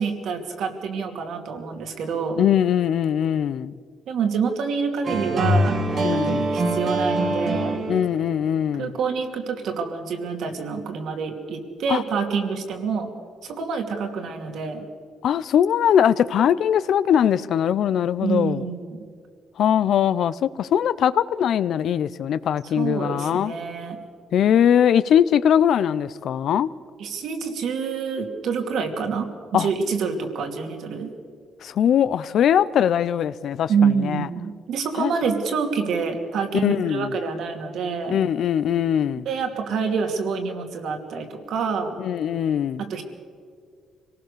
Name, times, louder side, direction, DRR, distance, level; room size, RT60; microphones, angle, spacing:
voice 1, 0.0-2.4 4.1-5.8 6.1-7.7 8.8-13.1 13.4-14.9 18.2-19.0 22.8-24.0 27.0-31.1 33.7-38.2 39.2-42.0 42.8-43.0, right 5 dB, 75° right, 2.8 m, -27 dB
voice 2, 2.4-3.7 5.9-6.5 7.9-8.9 11.9-12.0 15.2-18.6 19.6-23.5 24.3-26.7 29.5-29.7 31.6-34.3 35.0-35.1 36.6-37.1 38.1-39.3 42.0-42.8, left 9 dB, 70° left, 0.7 m, -21 dB
sound 1, 5.0-8.3, right 1 dB, 55° right, 2.6 m, -23 dB
25.5 x 18.5 x 6.8 m
cardioid pair, 90°, 0 cm